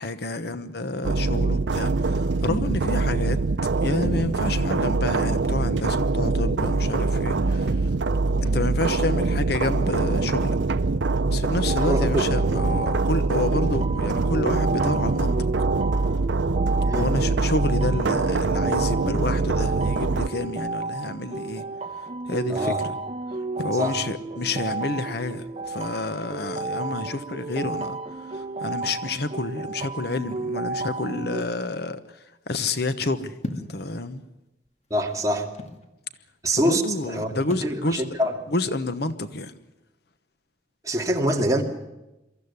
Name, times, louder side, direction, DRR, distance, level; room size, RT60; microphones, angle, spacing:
voice 1, 0.0-3.4 3.8-7.9 8.4-10.6 11.3-15.3 16.9-21.6 22.3-22.9 23.3-34.2 36.6-38.0 38.5-39.5, left 2 dB, 60° left, 1.1 m, -29 dB
sound 1, 1.0-20.3, right 3 dB, 90° right, 0.7 m, -23 dB
sound 2, 11.7-31.4, right 3 dB, 35° right, 1.4 m, -33 dB
voice 2, 11.9-12.2 16.8-17.1 22.5-22.8 23.8-23.9 34.9-35.5 36.4-37.3 37.6-38.3 40.8-41.6, equal, 20° right, 2.4 m, -24 dB
sound 3, 33.4-33.8 34.7-35.9 37.5-37.8, left 1 dB, 40° left, 2.0 m, -35 dB
23.5 x 14.5 x 9.6 m
head